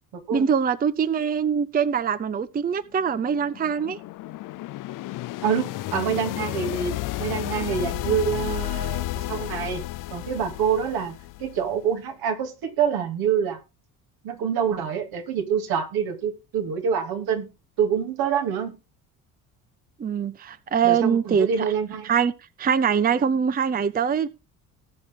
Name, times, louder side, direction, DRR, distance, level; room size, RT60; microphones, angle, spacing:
voice 1, 0.3-4.0 20.0-21.7 22.0-22.3 22.6-24.3, right 7 dB, 25° right, 0.6 m, -23 dB
sound 1, 2.9-11.8, left 17 dB, 60° left, 0.5 m, -32 dB
voice 2, 5.4-6.9 7.2-9.8 10.1-13.6 14.2-17.5 17.8-18.7 20.8-22.1, right 7 dB, 75° right, 2.8 m, -26 dB
18.5 x 6.4 x 3.7 m
supercardioid pair, 80°, 37 cm